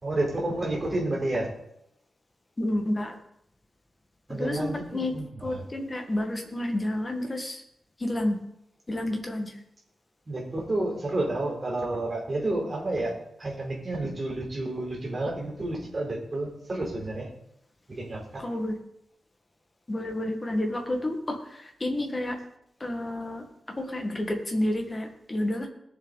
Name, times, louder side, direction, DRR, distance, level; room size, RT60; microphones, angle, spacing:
voice 1, 0.0-1.5 4.3-5.2 5.5-5.6 10.3-17.3 17.9-18.2, right 2 dB, 30° right, -2 dB, 4.2 m, -30 dB
voice 2, 2.6-3.2 4.3-5.1 5.4-7.6 8.0-8.4 8.9-9.6 18.4-18.7 19.9-22.4 22.8-23.5 23.8-25.7, left 1 dB, 20° left, 3 dB, 1.8 m, -30 dB
19.5 x 7.2 x 4.1 m, 0.80 s
wide cardioid pair, 155°, 0 cm